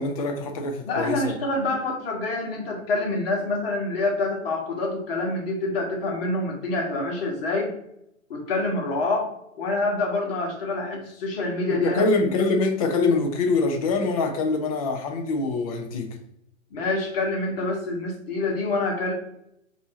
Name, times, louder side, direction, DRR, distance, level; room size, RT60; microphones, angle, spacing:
voice 1, 0.0-1.4 11.7-16.2, left 3 dB, 25° left, 0.6 m, -24 dB
voice 2, 0.9-7.7 8.3-9.3 9.6-12.5 16.7-19.1, left 2 dB, 45° left, 1.4 m, -26 dB
5.3 x 2.8 x 2.7 m
figure-of-eight pair, 120°, 41 cm